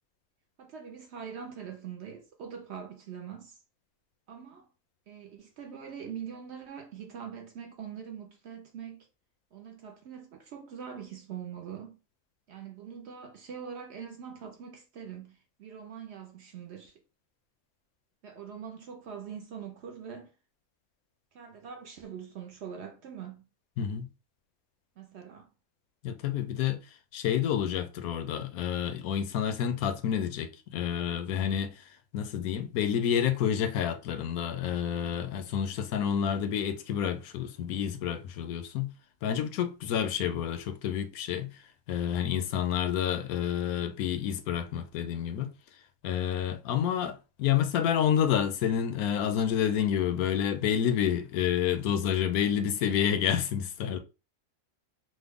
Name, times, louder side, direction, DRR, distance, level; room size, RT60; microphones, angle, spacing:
voice 1, 0.6-3.6 4.3-4.7 5.1-9.1 9.5-12.0 12.5-16.9 18.2-20.3 21.3-23.4 25.0-25.5, right 7 dB, 65° right, 0.7 m, -43 dB
voice 2, 23.8-24.1 26.0-26.8 27.1-31.8 32.1-38.9 39.2-41.5 41.9-45.5 46.0-54.0, left 9 dB, 90° left, 1.1 m, -29 dB
3.3 x 2.1 x 3.5 m
omnidirectional pair, 1.5 m